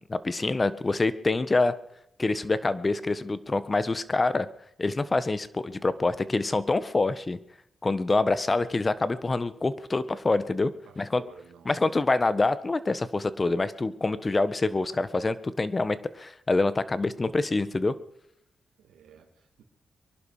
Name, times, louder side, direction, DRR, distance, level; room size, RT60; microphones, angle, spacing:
voice 1, 0.1-1.7 2.2-4.5 4.8-7.4 7.8-11.2 11.6-18.0, left 3 dB, 35° left, 1.5 m, -26 dB
voice 2, 10.8-11.8 18.8-19.6, right 7 dB, 85° right, 2.6 m, -52 dB
24.0 x 11.5 x 5.0 m
cardioid pair, 55°, 0 cm